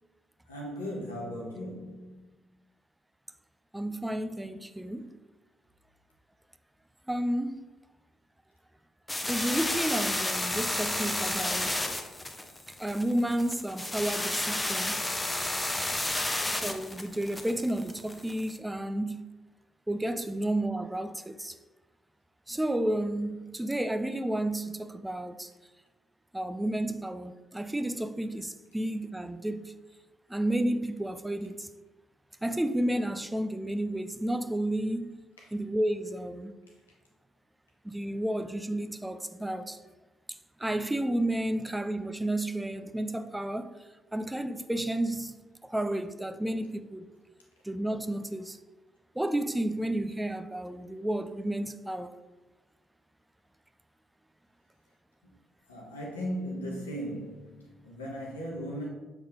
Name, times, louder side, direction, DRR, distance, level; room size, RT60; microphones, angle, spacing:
voice 1, 0.5-2.3 35.4-35.5 55.2-55.4 55.7-58.9, equal, 85° left, 1.3 m, -37 dB
voice 2, 3.7-5.2 7.1-7.7 9.3-11.8 12.7-15.0 16.5-19.3 19.9-21.6 22.5-25.5 26.3-29.7 30.3-31.7 32.4-35.3 35.5-36.5 37.8-39.8 40.6-43.8 44.1-45.4 45.6-47.1 47.6-48.6 49.1-52.1, right 1 dB, 10° right, 0.5 m, -31 dB
sound 1, 9.1-18.5, left 1 dB, 15° left, 0.9 m, -31 dB
6.9 x 3.6 x 5.1 m
figure-of-eight pair, 45°, 0 cm